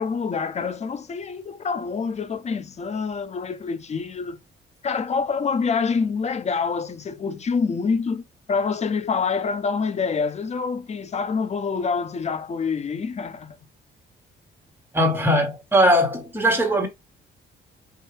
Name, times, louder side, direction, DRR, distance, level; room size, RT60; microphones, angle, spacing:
voice 1, 0.0-4.4 4.8-13.6, left 5 dB, 35° left, 0.6 m, -26 dB
voice 2, 14.9-16.9, equal, 10° right, 1.4 m, -20 dB
4.7 x 2.7 x 3.2 m
cardioid pair, 90°, 20 cm